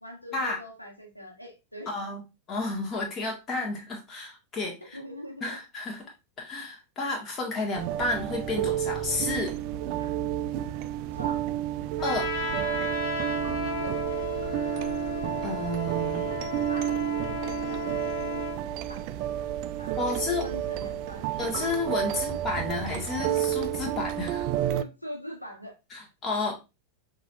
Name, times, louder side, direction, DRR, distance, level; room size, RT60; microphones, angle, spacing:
voice 1, 0.0-2.0 4.9-5.6 10.0-10.2 11.1-11.5 13.6-14.0 16.7-19.0 19.8-20.0 20.4-21.3 22.1-22.2 24.7-25.8, equal, 90° left, 1 dB, 1.2 m, -43 dB
voice 2, 1.9-2.2 2.5-4.7 5.4-6.0 6.4-9.6 12.0-12.3 15.4-16.3 20.0-20.5 21.4-24.5 25.9-26.5, left 2 dB, 25° left, 0 dB, 1.7 m, -31 dB
sound 1, 7.8-24.8, right 12 dB, 45° right, 0.3 m, -31 dB
Trumpet, 12.0-18.6, left 4 dB, 45° left, 1.4 m, -34 dB
5.9 x 2.9 x 2.6 m, 0.26 s
figure-of-eight pair, 90°, 0 cm